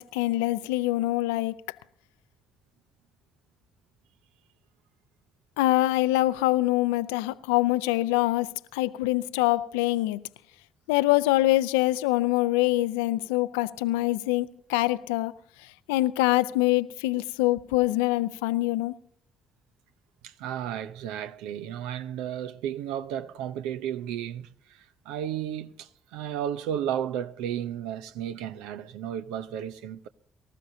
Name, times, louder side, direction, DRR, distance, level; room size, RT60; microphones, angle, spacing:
voice 1, 0.0-1.5 5.6-10.2 10.9-15.3 15.9-18.9, left 17 dB, 80° left, 0.5 m, -24 dB
voice 2, 20.2-30.1, right 10 dB, 75° right, 0.6 m, -33 dB
23.5 x 14.5 x 2.7 m
hypercardioid pair, 45°, 0 cm